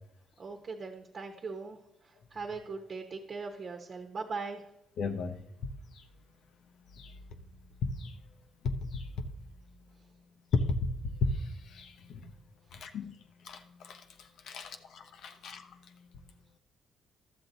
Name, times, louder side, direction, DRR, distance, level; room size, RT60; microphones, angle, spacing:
voice 1, 0.4-1.8 2.0-4.6, right 4 dB, 45° right, 4 dB, 1.1 m, -40 dB
voice 2, 5.0-5.4 7.0-7.1 7.8-8.1 8.6-9.1 10.5-10.8 11.0-11.3 11.7-12.3 12.7-13.1 13.4-14.0 14.5-15.6, left 4 dB, 75° left, 7 dB, 0.9 m, -34 dB
12.0 x 7.4 x 4.0 m, 0.87 s
cardioid pair, 90°, 0 cm